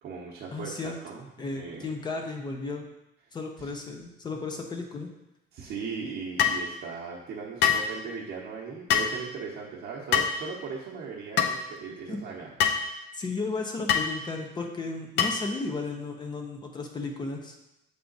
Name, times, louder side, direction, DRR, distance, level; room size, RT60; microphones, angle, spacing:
voice 1, 0.0-1.3 1.5-1.9 3.6-3.7 5.5-12.5, right 5 dB, 50° right, -4 dB, 0.8 m, -38 dB
voice 2, 0.5-1.0 1.4-2.8 3.3-5.1 12.1-12.2 13.1-17.6, left 3 dB, 20° left, 3 dB, 0.6 m, -34 dB
sound 1, 6.4-6.6 7.6-7.9 8.9-9.1 10.1-10.4 11.4-11.5 12.6-12.8 13.9-14.1 15.2-15.5, left 8 dB, 65° left, 0.6 m, -23 dB
6.9 x 3.5 x 3.9 m, 0.91 s
cardioid pair, 170°, 19 cm